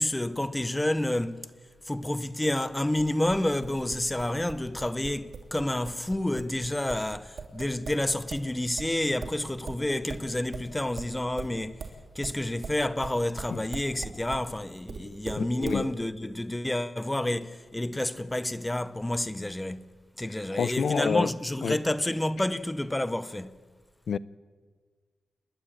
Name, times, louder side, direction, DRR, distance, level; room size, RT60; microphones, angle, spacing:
voice 1, 0.0-1.5 1.9-11.9 12.1-23.6, left 1 dB, 10° left, 0.7 m, -29 dB
sound 1, 2.9-8.5 8.8-14.5 14.9-15.8, right 4 dB, 55° right, 3.1 m, -40 dB
voice 2, 15.4-15.9 20.5-21.3 21.6-21.8 24.1-24.2, left 7 dB, 55° left, 0.5 m, -28 dB
29.0 x 11.0 x 8.8 m
wide cardioid pair, 180°, 0 cm